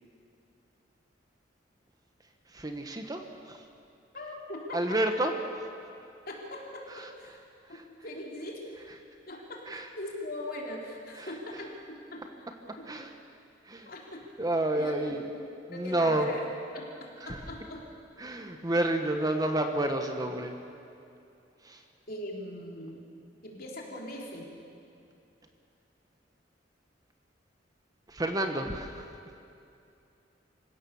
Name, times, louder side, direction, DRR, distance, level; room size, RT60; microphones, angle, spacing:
voice 1, 2.5-3.6 4.7-5.3 9.7-9.9 11.2-11.3 12.9-13.1 13.6-13.9 14.4-15.3 15.7-16.3 17.2-17.4 18.2-20.5 21.6-21.8 28.1-29.1, right 1 dB, 20° right, 5 dB, 1.2 m, -30 dB
voice 2, 4.1-5.0 6.3-7.4 7.7-8.6 9.3-12.2 12.8-12.9 13.9-14.3 14.7-15.4 15.7-16.4 16.7-16.9 17.3-17.8 22.1-23.0 23.4-24.5, left 1 dB, 55° left, -2 dB, 3.9 m, -40 dB
26.0 x 16.5 x 7.0 m, 2.6 s
head